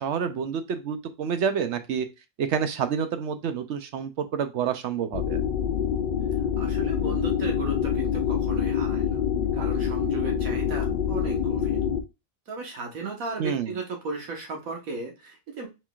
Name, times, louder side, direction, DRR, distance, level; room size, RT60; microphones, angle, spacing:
voice 1, 0.0-2.1 2.4-5.4 13.4-13.8, right 7 dB, 65° right, 9 dB, 0.8 m, -28 dB
sound 1, 5.1-12.0, left 8 dB, 65° left, 0.5 m, -26 dB
voice 2, 6.6-9.2 9.5-11.8 12.5-15.7, right 4 dB, 85° right, 2 dB, 1.7 m, -35 dB
4.3 x 3.9 x 2.4 m, 0.26 s
omnidirectional pair, 1.4 m